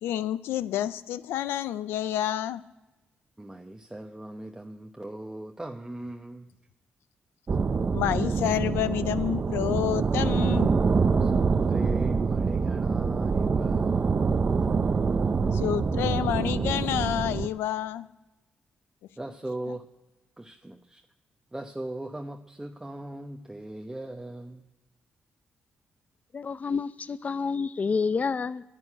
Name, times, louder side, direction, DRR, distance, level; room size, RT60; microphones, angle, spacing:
voice 1, 0.0-2.6 7.9-10.7 15.5-18.1 19.7-19.8, left 12 dB, 90° left, 15 dB, 0.5 m, -29 dB
voice 2, 3.4-6.5 10.4-10.5 11.2-14.5 19.2-19.9 20.4-21.0 21.5-24.6, right 1 dB, 10° right, 3 dB, 0.9 m, -39 dB
sound 1, 7.5-17.5, right 5 dB, 45° right, 0.7 m, -25 dB
voice 3, 26.3-28.6, left 5 dB, 40° left, 15 dB, 0.6 m, -28 dB
11.0 x 9.5 x 9.8 m, 1.0 s
cardioid pair, 65°, 4 cm